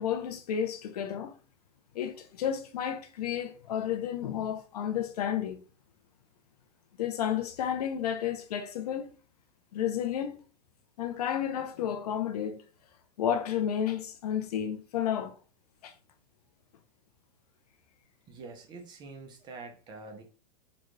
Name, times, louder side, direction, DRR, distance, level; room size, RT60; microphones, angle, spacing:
voice 1, 0.0-1.3 1.9-5.6 7.0-9.1 9.7-10.4 11.0-12.6 13.2-15.3 15.8-15.9, left 9 dB, 75° left, 0.8 m, -31 dB
voice 2, 18.3-20.2, right 3 dB, 20° right, 0.7 m, -45 dB
4.0 x 2.4 x 3.2 m
supercardioid pair, 150°, 20 cm